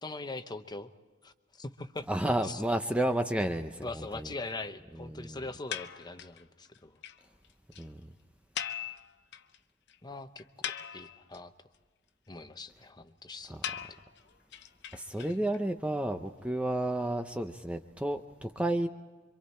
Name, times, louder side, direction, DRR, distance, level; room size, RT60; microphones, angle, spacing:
voice 1, 0.0-0.9 1.2-2.1 2.4-2.6 3.8-7.0 10.0-11.5 12.3-13.6, left 3 dB, 20° left, 9 dB, 0.9 m, -42 dB
voice 2, 2.1-4.3 5.0-5.4 7.8-8.1 13.5-13.6 14.9-18.9, right 1 dB, 5° right, 5 dB, 0.6 m, -31 dB
sound 1, 5.7-6.4 6.8-6.9 7.0-7.2 7.4-7.5 7.7-7.8 8.6-9.6 9.9-10.0 10.4-11.4 13.6-15.6, left 9 dB, 60° left, 0.7 m, -39 dB
26.5 x 24.5 x 4.3 m, 1.4 s
head